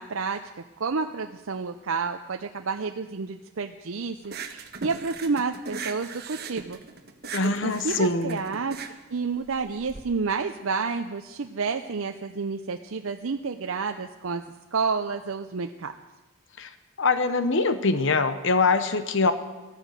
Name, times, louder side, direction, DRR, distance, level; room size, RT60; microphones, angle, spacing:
voice 1, 0.0-6.8 7.6-8.8 9.1-14.4 14.7-15.9, right 4 dB, 65° right, 6 dB, 0.6 m, -30 dB
sound 1, 4.2-10.0, right 5 dB, 45° right, 1.3 m, -38 dB
voice 2, 7.3-8.4 16.6-16.7 17.0-19.3, left 3 dB, 60° left, 11 dB, 0.9 m, -23 dB
15.0 x 14.0 x 6.7 m, 1.2 s
head